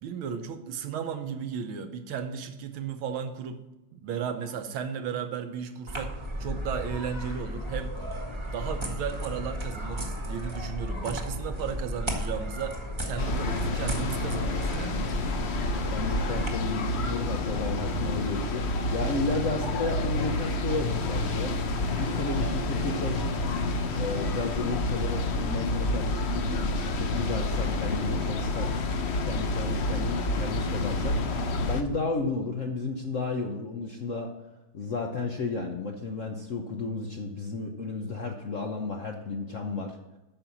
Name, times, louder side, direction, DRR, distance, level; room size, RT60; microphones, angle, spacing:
voice 1, 0.0-3.6 3.9-6.1 6.4-7.9 8.5-12.8 13.0-15.0, right 7 dB, 75° right, 8 dB, 1.7 m, -34 dB
sound 1, 5.9-16.5, equal, 15° right, 1.1 m, -34 dB
sound 2, 13.2-31.8, left 2 dB, 80° left, 0.5 m, -29 dB
voice 2, 15.7-21.5 21.9-23.3 23.9-28.8 29.2-31.2 31.7-34.3 34.7-40.0, left 3 dB, 60° left, 2 dB, 0.8 m, -33 dB
8.9 x 6.3 x 7.1 m, 1.0 s
omnidirectional pair, 2.4 m